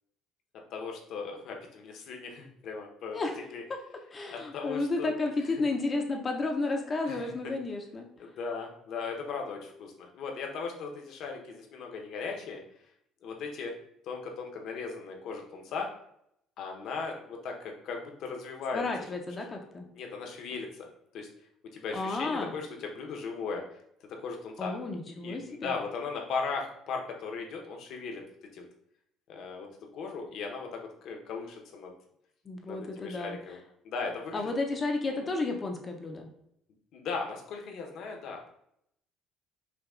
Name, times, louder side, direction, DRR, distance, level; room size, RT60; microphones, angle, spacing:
voice 1, 0.7-3.2 3.5-3.6 4.3-5.1 5.5-5.6 7.1-7.2 8.2-12.6 13.2-13.7 14.0-15.9 16.6-18.8 19.9-20.9 21.1-21.3 21.7-23.8 24.1-24.7 25.2-28.2 28.5-28.7 29.3-31.9 32.7-33.6 33.8-34.5 36.9-38.5, left 4 dB, 60° left, 2 dB, 0.9 m, -37 dB
voice 2, 4.1-8.1 18.7-19.9 21.9-22.5 24.6-25.7 32.4-33.4 34.3-36.3, left 3 dB, 25° left, 3 dB, 0.6 m, -32 dB
5.8 x 2.3 x 3.7 m, 0.73 s
cardioid pair, 150°, 0 cm